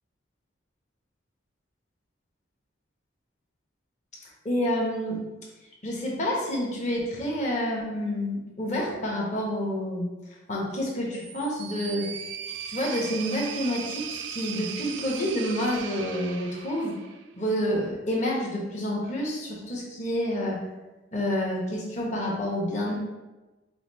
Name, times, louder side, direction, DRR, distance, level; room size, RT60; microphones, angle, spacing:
voice 1, 4.4-5.2 5.8-10.1 10.5-12.1 12.7-17.0 17.3-20.6 21.1-22.9, equal, 35° left, -3 dB, 0.9 m, -28 dB
sound 1, 11.1-17.3, right 8 dB, 70° right, 0.3 m, -38 dB
4.9 x 2.0 x 4.1 m, 1.1 s
head